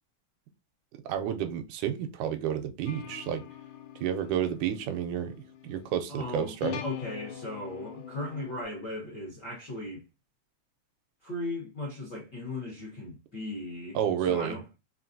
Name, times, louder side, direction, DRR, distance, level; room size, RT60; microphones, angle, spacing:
voice 1, 1.1-3.4 4.0-5.3 5.6-6.8 14.0-14.6, right 9 dB, 85° right, 2.0 m, -30 dB
sound 1, 2.9-8.6, left 10 dB, 80° left, 2.0 m, -43 dB
voice 2, 6.1-6.5 6.8-10.0 11.2-14.8, left 1 dB, 65° left, 1.0 m, -37 dB
4.7 x 3.1 x 2.6 m
omnidirectional pair, 3.5 m